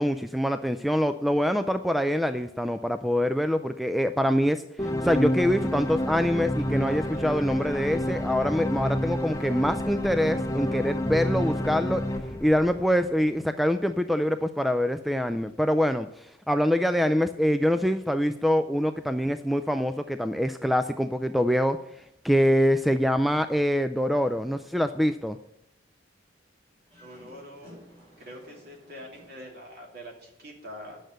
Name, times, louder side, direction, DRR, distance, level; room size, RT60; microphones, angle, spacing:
voice 1, 0.0-12.0 12.4-21.8 22.2-25.4, equal, ahead, 9 dB, 0.3 m, -25 dB
sound 1, 4.8-13.2, left 1 dB, 15° left, 0.7 m, -29 dB
Dog, 23.9-25.0 25.4-25.5 26.7-29.4, equal, 30° right, 4.6 m, -54 dB
voice 2, 27.0-27.8 28.2-31.0, equal, 55° right, 0 dB, 2.8 m, -44 dB
9.2 x 6.5 x 7.7 m, 0.81 s
head